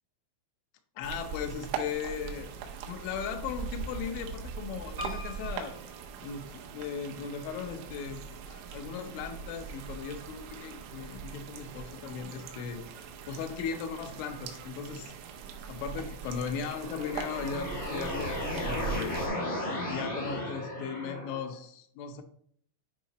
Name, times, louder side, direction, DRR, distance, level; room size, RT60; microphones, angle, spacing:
voice 1, 1.0-2.5 2.9-5.8 6.2-12.8 13.3-15.1 15.7-19.1 19.9-22.2, left 7 dB, 80° left, 7 dB, 2.8 m, -37 dB
sound 1, 1.0-19.3, right 7 dB, 80° right, 3.5 m, -41 dB
Piano, 5.0-7.0 7.6-8.3 8.6-8.7 8.9-9.0, left 1 dB, 50° right, 0.8 m, -44 dB
sound 2, 16.6-21.5, left 1 dB, 30° left, 1.1 m, -35 dB
10.0 x 4.8 x 3.0 m, 0.63 s
omnidirectional pair, 6.0 m